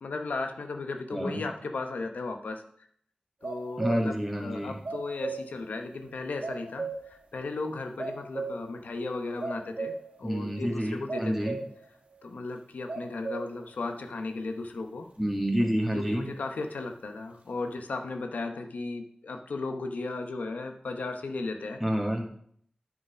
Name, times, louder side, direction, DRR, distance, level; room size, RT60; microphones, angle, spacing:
voice 1, 0.0-2.6 3.4-9.9 10.2-11.5 12.2-15.1 15.9-21.8, left 3 dB, 90° left, 5 dB, 0.9 m, -35 dB
voice 2, 1.1-1.4 3.8-4.8 10.2-11.6 15.2-16.3 21.8-22.2, equal, ahead, -1 dB, 2.1 m, -28 dB
sound 1, 3.4-4.3 4.5-5.7 6.0-6.1 6.4-7.3 7.5-7.7 8.0-8.8 9.1-10.2 10.5-10.6 11.1-11.9 12.2-12.3 12.9-13.7, right 3 dB, 65° right, 1.6 m, -36 dB
9.9 x 5.0 x 5.0 m, 0.65 s
cardioid pair, 45°, 3 cm